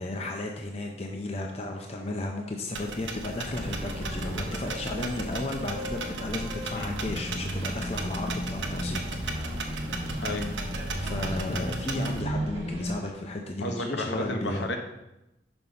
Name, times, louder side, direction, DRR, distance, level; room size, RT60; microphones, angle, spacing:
voice 1, 0.0-9.6 11.0-14.6, left 2 dB, 35° left, 2 dB, 0.6 m, -34 dB
sound 1, 2.7-12.2, right 3 dB, 80° right, 0.9 m, -37 dB
sound 2, 3.5-13.0, equal, 35° right, 1.5 m, -34 dB
voice 2, 10.2-10.5 13.6-14.8, left 1 dB, 70° left, 4 dB, 1.0 m, -32 dB
6.0 x 5.4 x 4.8 m, 0.92 s
head